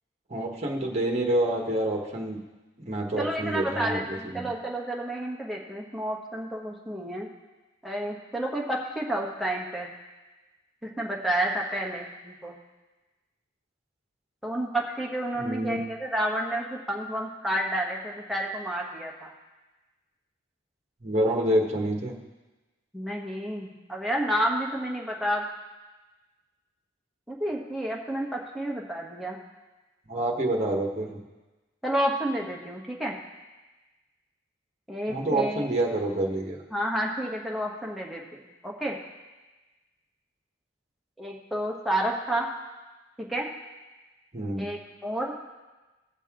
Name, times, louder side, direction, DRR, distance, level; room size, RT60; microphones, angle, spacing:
voice 1, 0.3-2.4 2.8-4.5 15.4-15.8 21.0-22.2 30.1-31.2 35.1-36.6 44.3-44.6, right 1 dB, 35° right, 0 dB, 1.4 m, -27 dB
voice 2, 3.2-7.3 7.8-9.9 10.8-12.5 14.4-19.3 22.9-25.5 27.3-29.4 31.8-33.2 34.9-35.7 36.7-39.0 41.2-42.5 43.2-43.5 44.6-45.3, right 1 dB, ahead, -2 dB, 1.3 m, -30 dB
17.0 x 6.6 x 3.8 m, 1.2 s
head